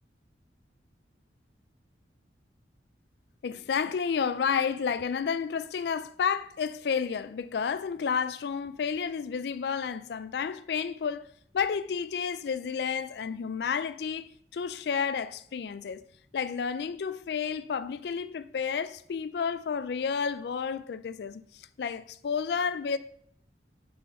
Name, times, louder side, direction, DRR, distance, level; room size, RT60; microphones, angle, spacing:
voice 1, 3.4-11.3 11.5-16.0 16.3-23.0, left 6 dB, 65° left, 0.4 m, -31 dB
7.4 x 3.8 x 5.7 m
head